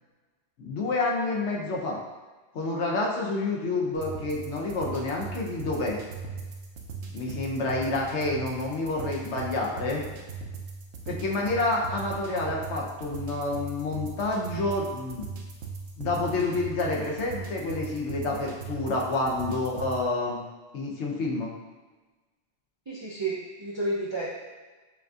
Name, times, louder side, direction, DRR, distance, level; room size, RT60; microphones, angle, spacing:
voice 1, 0.6-2.0 2.5-6.0 7.1-10.0 11.1-15.3 16.0-20.4 20.7-21.5, left 2 dB, 75° left, -2 dB, 1.0 m, -28 dB
sound 1, 3.9-20.0, right 4 dB, 70° right, 0.9 m, -39 dB
voice 2, 11.1-11.4 22.9-24.3, right 2 dB, 50° right, -7 dB, 0.3 m, -32 dB
5.7 x 2.6 x 2.4 m, 1.3 s
omnidirectional pair, 1.2 m